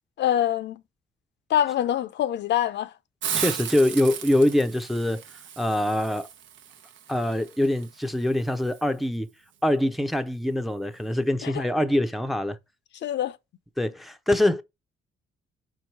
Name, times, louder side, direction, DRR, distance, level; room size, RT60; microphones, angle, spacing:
voice 1, 0.2-0.8 1.5-2.9 11.4-11.6 13.0-13.4, left 11 dB, 65° left, 0.6 m, -25 dB
Hiss, 3.2-8.8, right 9 dB, 75° right, 0.9 m, -36 dB
voice 2, 3.3-5.2 5.6-6.3 7.1-9.3 9.6-12.6 13.8-14.6, left 1 dB, ahead, 0.6 m, -24 dB
5.1 x 4.7 x 4.4 m
cardioid pair, 90°, 20 cm